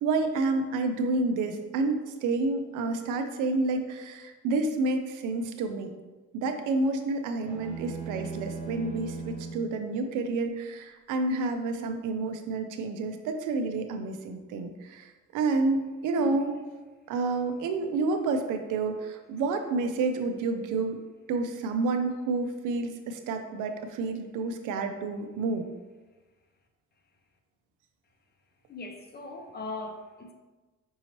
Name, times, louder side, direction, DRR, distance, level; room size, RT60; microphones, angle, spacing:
voice 1, 0.0-5.9 6.3-16.6 17.1-21.0 21.3-25.7, right 3 dB, 90° right, 6 dB, 0.5 m, -29 dB
sound 1, 7.4-9.7, right 4 dB, 5° right, 1.0 m, -38 dB
voice 2, 28.7-30.3, left 2 dB, 35° left, 5 dB, 0.6 m, -39 dB
5.4 x 2.8 x 3.0 m, 1.2 s
cardioid pair, 90°, 30 cm